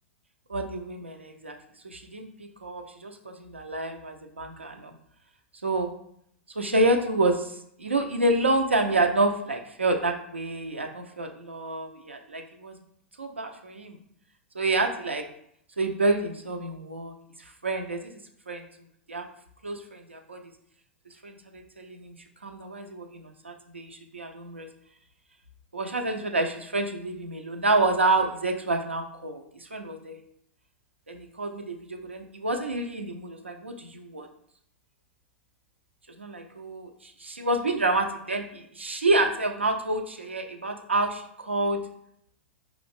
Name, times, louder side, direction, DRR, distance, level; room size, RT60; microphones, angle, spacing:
voice 1, 0.5-1.6 1.8-4.9 5.6-5.9 6.6-12.7 13.2-14.0 14.5-15.2 15.8-18.2 18.5-18.6 19.1-19.3 19.6-20.5 21.2-22.2 22.4-24.7 25.7-30.2 31.1-34.3 36.2-41.8, right 2 dB, 85° right, 4 dB, 0.5 m, -28 dB
4.9 x 3.0 x 3.5 m, 0.70 s
figure-of-eight pair, 95°, 6 cm